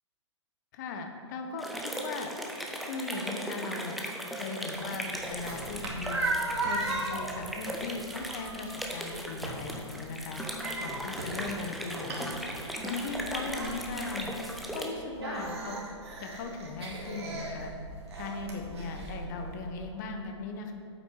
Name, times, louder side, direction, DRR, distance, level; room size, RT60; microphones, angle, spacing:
voice 1, 0.7-2.3 2.8-4.0 4.3-6.3 6.6-10.4 10.8-12.3 12.8-14.4 14.7-15.8 16.2-17.7 18.1-20.7, left 4 dB, 40° left, 4 dB, 1.0 m, -38 dB
sound 1, 1.6-14.9, equal, ahead, 0.8 m, -38 dB
sound 2, 4.7-19.7, right 2 dB, 60° right, 2.2 m, -37 dB
8.6 x 8.2 x 4.7 m, 2.4 s
figure-of-eight pair, 115°, 15 cm